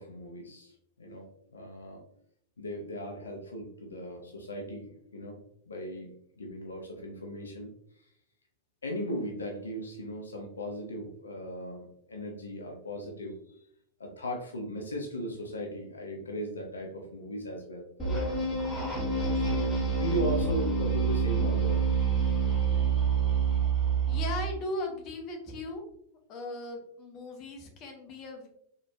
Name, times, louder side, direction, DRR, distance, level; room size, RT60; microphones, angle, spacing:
voice 1, 0.0-2.0 2.6-5.4 5.7-6.1 6.4-7.7 8.8-13.4 14.0-18.4 19.3-21.8, equal, 75° left, 2 dB, 0.6 m, -37 dB
sound 1, 18.0-24.5, right 5 dB, 10° left, 1.4 m, -27 dB
voice 2, 24.1-25.8 26.3-28.5, left 2 dB, 35° left, 2 dB, 0.7 m, -37 dB
4.0 x 2.8 x 2.2 m, 0.70 s
figure-of-eight pair, 90°, 0 cm